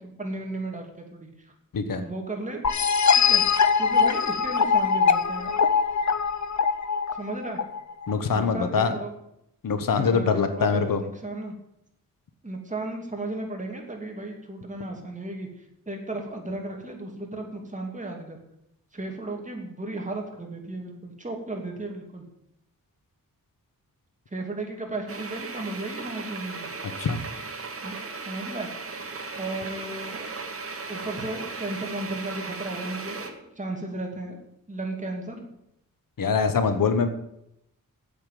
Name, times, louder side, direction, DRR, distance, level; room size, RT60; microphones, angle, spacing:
voice 1, 0.0-1.5 2.0-2.6 3.2-3.4 3.8-5.5 7.1-7.6 8.3-9.1 9.9-11.5 12.4-18.4 18.9-22.2 24.3-26.7 27.8-28.7 29.3-30.3 30.9-34.4 34.7-35.5, right 2 dB, 20° right, 1 dB, 2.7 m, -35 dB
sound 1, 2.6-8.1, left 6 dB, 55° left, 0.8 m, -22 dB
voice 2, 8.1-9.0 9.6-11.0 27.0-27.2 36.2-37.1, left 5 dB, 70° left, 9 dB, 1.2 m, -23 dB
sound 2, 25.1-33.3, right 4 dB, 40° right, 1.7 m, -37 dB
8.6 x 8.1 x 9.2 m, 0.81 s
wide cardioid pair, 110°, 35 cm